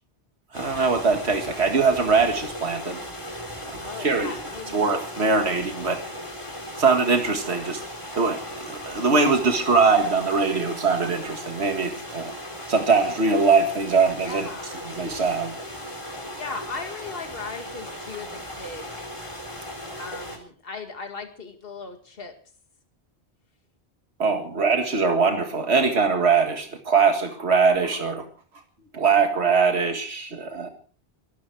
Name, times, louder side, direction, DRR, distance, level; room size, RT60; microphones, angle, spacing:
sound 1, 0.5-20.4, equal, 25° left, 4.0 m, -37 dB
voice 1, 0.5-3.0 3.7-4.3 4.7-6.0 6.8-7.8 8.1-12.3 12.7-14.5 14.9-15.5 24.2-28.3 28.9-30.7, right 4 dB, 75° right, 5 dB, 2.2 m, -22 dB
voice 2, 3.8-4.8 14.2-14.7 16.4-18.9 20.0-22.4, left 4 dB, 60° left, 5 dB, 2.4 m, -37 dB
24.0 x 13.0 x 4.6 m, 0.42 s
omnidirectional pair, 1.1 m